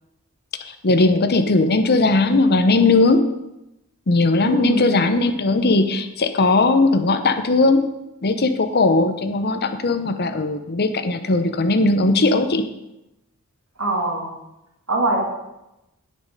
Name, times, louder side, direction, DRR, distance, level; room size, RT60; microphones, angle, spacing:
voice 1, 0.7-3.3 4.1-7.8 8.2-12.6, left 2 dB, 45° left, 9 dB, 0.8 m, -18 dB
voice 2, 4.4-5.2 13.8-14.3 14.9-15.2, right 2 dB, 70° right, 0 dB, 2.5 m, -23 dB
9.7 x 8.4 x 5.3 m, 0.92 s
head